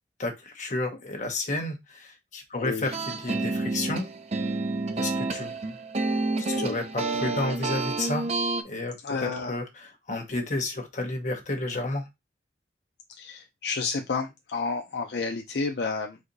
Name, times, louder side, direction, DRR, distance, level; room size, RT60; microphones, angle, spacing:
voice 1, 0.2-4.1 5.0-5.5 6.4-8.3 8.6-12.1, left 2 dB, 45° left, 4 dB, 1.1 m, -31 dB
voice 2, 2.6-2.9 6.5-6.7 9.0-9.6 13.2-16.2, left 4 dB, 65° left, 4 dB, 0.5 m, -31 dB
sound 1, 2.9-8.6, right 3 dB, 40° right, 0.5 m, -29 dB
4.2 x 2.6 x 3.9 m, 0.20 s
head